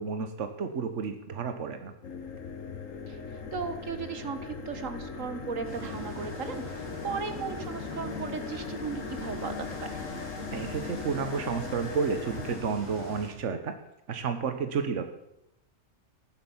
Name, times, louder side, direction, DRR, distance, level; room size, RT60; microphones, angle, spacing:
voice 1, 0.0-1.9 10.5-13.8 14.1-15.1, right 5 dB, 70° right, 8 dB, 1.4 m, -31 dB
sound 1, 2.0-12.6, left 5 dB, 85° left, 1.7 m, -39 dB
voice 2, 3.1-10.0, right 5 dB, 85° right, 9 dB, 1.8 m, -37 dB
sound 2, 5.6-13.3, left 1 dB, 10° right, 6.2 m, -42 dB
15.0 x 12.0 x 7.2 m, 0.86 s
omnidirectional pair, 1.3 m